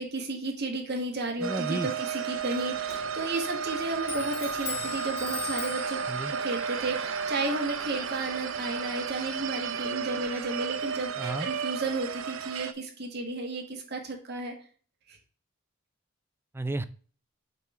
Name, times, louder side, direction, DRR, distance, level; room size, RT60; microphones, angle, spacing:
voice 1, 0.0-6.0 6.3-14.5 15.1-15.2, right 2 dB, 55° right, 3 dB, 1.6 m, -33 dB
voice 2, 1.4-1.9 6.1-6.3 11.2-11.5 16.5-16.9, right 2 dB, 10° right, 11 dB, 0.4 m, -32 dB
sound 1, 1.4-12.7, right 6 dB, 85° right, 0.6 m, -33 dB
Clock, 2.3-11.6, left 5 dB, 30° left, 1.8 m, -44 dB
8.1 x 3.6 x 4.3 m, 0.41 s
head